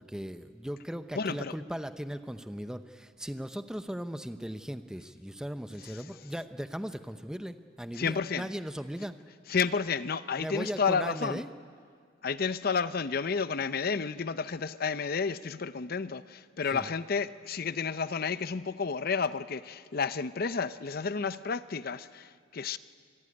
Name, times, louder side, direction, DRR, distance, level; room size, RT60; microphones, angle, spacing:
voice 1, 0.0-9.1 10.4-11.5 16.7-16.9, equal, 5° right, 10 dB, 0.7 m, -38 dB
voice 2, 1.1-1.5 7.9-8.5 9.5-11.4 12.2-22.8, left 5 dB, 50° left, 14 dB, 0.6 m, -31 dB
25.5 x 14.5 x 9.8 m, 2.1 s
head